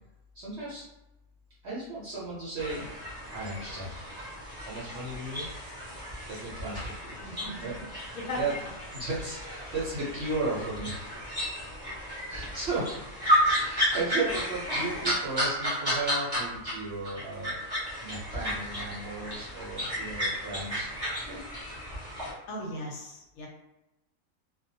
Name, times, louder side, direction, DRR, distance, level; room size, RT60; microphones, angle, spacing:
voice 1, 0.3-0.8 1.6-2.9 3.3-4.0 4.7-5.4 6.3-7.2 7.6-7.8 8.3-8.5 8.9-11.2 12.3-12.9 13.6-17.6 18.0-21.4, right 3 dB, 60° right, -7 dB, 0.7 m, -35 dB
sound 1, 2.6-16.7 17.0-22.3, equal, 20° right, 0.7 m, -33 dB
voice 2, 7.2-7.7 8.1-8.4 22.5-23.5, left 1 dB, 70° left, -1 dB, 1.0 m, -38 dB
2.4 x 2.2 x 2.6 m, 0.94 s
omnidirectional pair, 1.6 m